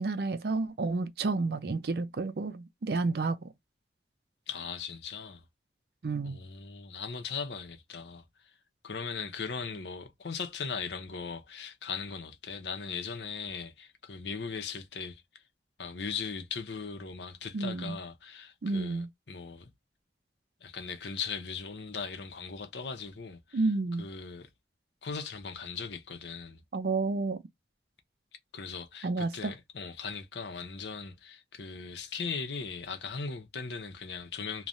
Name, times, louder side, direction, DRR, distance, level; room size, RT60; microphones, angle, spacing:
voice 1, 0.0-3.4 6.0-6.4 17.5-18.0 18.6-19.1 23.5-24.0 26.7-27.4 29.0-29.5, right 3 dB, 65° right, 0.5 m, -30 dB
voice 2, 4.5-5.4 6.2-8.2 8.8-15.2 15.8-19.7 20.6-23.6 24.0-24.5 25.0-26.6 28.5-34.7, left 5 dB, 85° left, 0.7 m, -39 dB
3.1 x 2.2 x 2.5 m
head